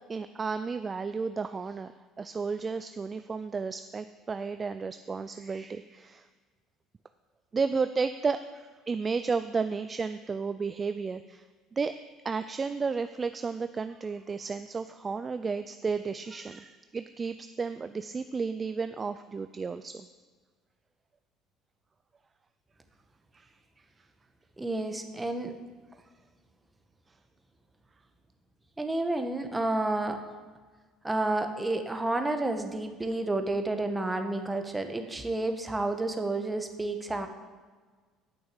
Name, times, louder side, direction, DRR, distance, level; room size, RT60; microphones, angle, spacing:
voice 1, 0.0-6.3 7.5-11.4 11.7-12.0 12.2-20.1 23.3-23.5, right 5 dB, 30° right, 10 dB, 0.4 m, -33 dB
voice 2, 24.6-25.5 28.8-30.2 31.0-37.3, right 2 dB, 15° right, 6 dB, 1.1 m, -30 dB
9.1 x 6.3 x 7.3 m, 1.4 s
supercardioid pair, 90°, 0 cm